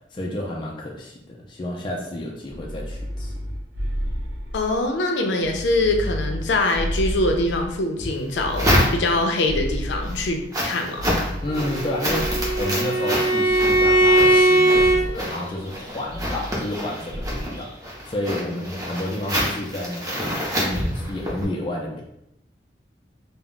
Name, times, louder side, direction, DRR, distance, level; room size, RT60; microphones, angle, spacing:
voice 1, 0.1-3.3 11.4-17.7 18.1-22.0, left 1 dB, 25° left, -2 dB, 0.3 m, -30 dB
sound 1, 2.5-4.9 5.4-7.8 8.3-10.5 10.9-12.8 13.5-14.4 14.7-15.2 16.1-16.8 17.1-17.6, equal, 80° right, 0.6 m, -31 dB
voice 2, 4.5-11.1, left 2 dB, 85° left, 3 dB, 0.5 m, -23 dB
sound 2, 8.0-9.4 9.9-21.5, equal, 20° right, 0.6 m, -27 dB
Bowed string instrument, 11.5-15.0, right 1 dB, 55° right, 0.9 m, -19 dB
2.2 x 2.0 x 3.7 m, 0.80 s
head